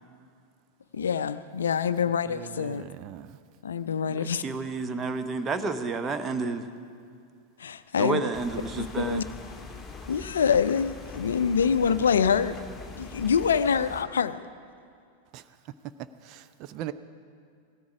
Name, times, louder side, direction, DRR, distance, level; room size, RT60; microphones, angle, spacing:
voice 1, 0.9-2.9 3.6-4.4 7.6-8.2 8.8-9.2 10.1-12.6 13.0-14.4, left 7 dB, 65° left, 13 dB, 0.4 m, -25 dB
voice 2, 2.2-3.4 15.3-15.7 16.0-16.9, right 12 dB, 40° right, 12 dB, 0.5 m, -40 dB
voice 3, 4.1-6.7 8.0-9.2, right 4 dB, 20° right, 9 dB, 0.9 m, -30 dB
sound 1, 8.3-14.0, left 4 dB, 10° left, 1.6 m, -42 dB
17.0 x 13.5 x 4.9 m, 2.4 s
figure-of-eight pair, 90°, 0 cm